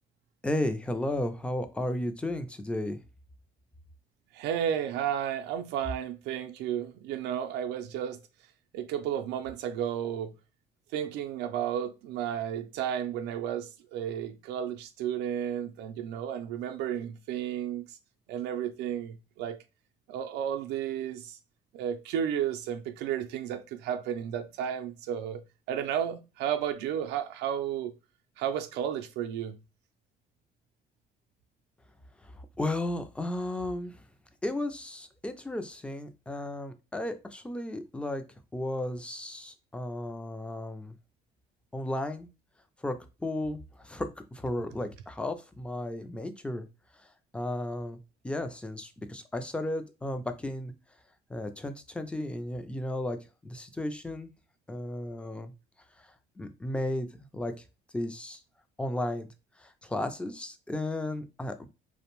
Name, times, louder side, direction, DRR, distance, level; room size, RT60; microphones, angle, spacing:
voice 1, 0.4-3.0 32.2-34.0 34.4-38.2 38.5-40.9 41.7-42.3 42.8-46.7 47.3-48.0 48.2-50.7 51.3-53.2 53.4-54.3 54.7-55.5 56.0-56.1 56.4-57.1 57.3-57.5 57.9-58.4 58.8-59.3 59.6-61.7, left 1 dB, 5° left, 0.3 m, -34 dB
voice 2, 4.3-8.2 8.7-10.3 10.9-18.0 18.3-19.6 20.1-21.4 21.7-25.4 25.7-27.9 28.4-29.6, right 9 dB, 90° right, 0.4 m, -32 dB
2.5 x 2.1 x 2.9 m
cardioid pair, 110°, 17 cm